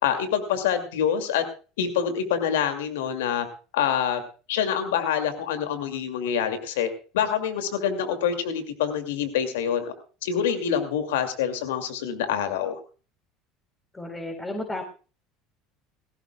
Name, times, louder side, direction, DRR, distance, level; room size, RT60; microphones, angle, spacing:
voice 1, 0.0-1.4 1.8-3.5 3.7-4.2 4.5-6.9 7.1-9.9 10.2-12.8, left 8 dB, 85° left, 8 dB, 2.4 m, -26 dB
voice 2, 13.9-14.8, left 1 dB, 15° left, 4 dB, 4.1 m, -32 dB
20.0 x 16.0 x 2.3 m, 0.36 s
hypercardioid pair, 85°, 0 cm